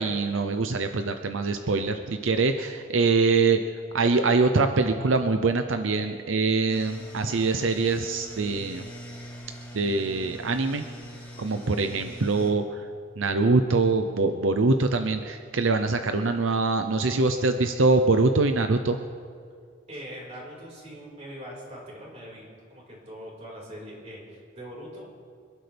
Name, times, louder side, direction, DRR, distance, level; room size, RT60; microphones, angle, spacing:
voice 1, 0.0-3.6 3.9-8.9 9.7-10.8 11.4-12.9 13.2-19.0, right 3 dB, 80° right, 7 dB, 0.7 m, -24 dB
sound 1, 6.7-12.5, equal, 10° left, 2.6 m, -43 dB
voice 2, 19.9-22.4 22.7-25.1, equal, 35° right, -4 dB, 4.7 m, -42 dB
26.0 x 12.0 x 3.5 m, 2.1 s
head